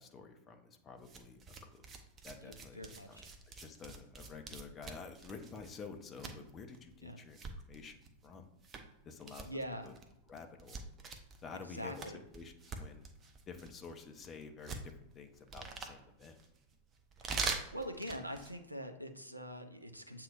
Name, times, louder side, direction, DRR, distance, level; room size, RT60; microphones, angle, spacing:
voice 1, 0.0-1.9 2.2-3.3 3.5-8.5 9.0-9.5 9.8-9.9 10.3-10.8 11.4-12.1 12.3-13.1 13.5-16.3, left 5 dB, 25° left, 5 dB, 0.6 m, -50 dB
sound 1, 1.0-18.6, right 4 dB, 25° right, 0.6 m, -45 dB
voice 2, 2.4-3.3 7.0-7.2 9.5-9.9 11.7-12.2 17.2-20.2, equal, 85° right, 5 dB, 0.5 m, -44 dB
7.4 x 2.8 x 2.4 m, 0.87 s
figure-of-eight pair, 90°, 0 cm